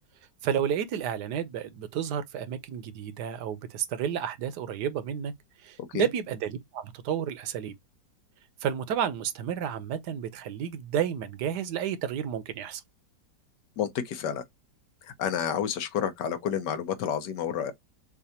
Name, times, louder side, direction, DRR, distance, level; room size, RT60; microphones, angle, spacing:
voice 1, 0.4-5.3 5.6-7.7 8.6-12.8, right 9 dB, 75° right, 1.3 m, -31 dB
voice 2, 13.8-14.4 15.2-17.7, left 8 dB, 90° left, 1.5 m, -29 dB
6.8 x 2.5 x 2.8 m
omnidirectional pair, 1.8 m